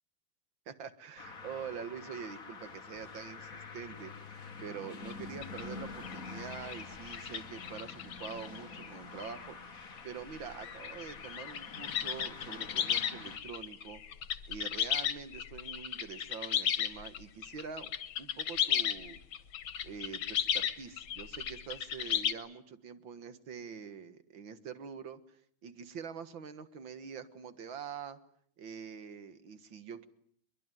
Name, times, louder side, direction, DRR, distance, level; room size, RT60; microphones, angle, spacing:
voice 1, 0.7-14.0 14.5-17.9 18.2-19.2 19.8-28.2 28.6-30.1, right 6 dB, 70° right, 12 dB, 2.3 m, -45 dB
sound 1, 1.2-13.4, left 4 dB, 45° left, 2.3 m, -47 dB
sound 2, 5.1-5.2 5.4-5.6 6.0-8.9 9.2-9.4 10.0-10.1 10.5-22.3, left 9 dB, 85° left, 2.2 m, -35 dB
23.0 x 23.0 x 9.2 m, 0.64 s
omnidirectional pair, 2.2 m